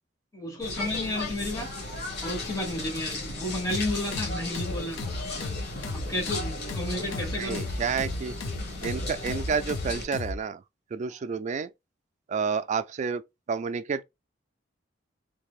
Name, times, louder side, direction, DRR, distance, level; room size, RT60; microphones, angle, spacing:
voice 1, 0.3-1.7 2.2-5.1 5.9-7.6, left 1 dB, 20° left, 1.2 m, -32 dB
sound 1, 0.6-10.1, left 2 dB, 55° left, 1.5 m, -36 dB
sound 2, 3.7-10.4, left 2 dB, 90° left, 0.6 m, -34 dB
voice 2, 7.4-8.4 8.8-10.6 10.9-11.7 12.3-13.2 13.5-14.0, right 6 dB, 40° right, 0.3 m, -30 dB
3.3 x 3.3 x 2.3 m
head